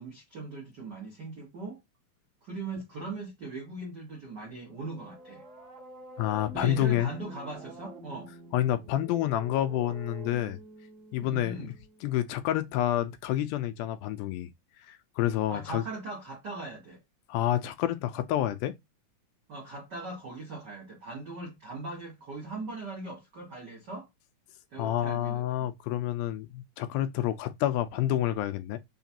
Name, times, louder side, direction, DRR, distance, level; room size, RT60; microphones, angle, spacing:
voice 1, 0.0-1.8 2.4-5.4 6.5-8.3 11.2-11.7 15.5-17.0 19.5-24.1 24.7-25.4, right 3 dB, 80° right, 0.9 m, -40 dB
sound 1, 4.5-12.3, right 1 dB, 50° right, 1.2 m, -48 dB
voice 2, 6.2-7.1 8.5-10.6 11.1-11.6 12.0-14.5 14.8-15.8 17.3-18.8 24.8-28.8, left 12 dB, 80° left, 2.3 m, -28 dB
5.8 x 2.4 x 2.7 m
omnidirectional pair, 4.4 m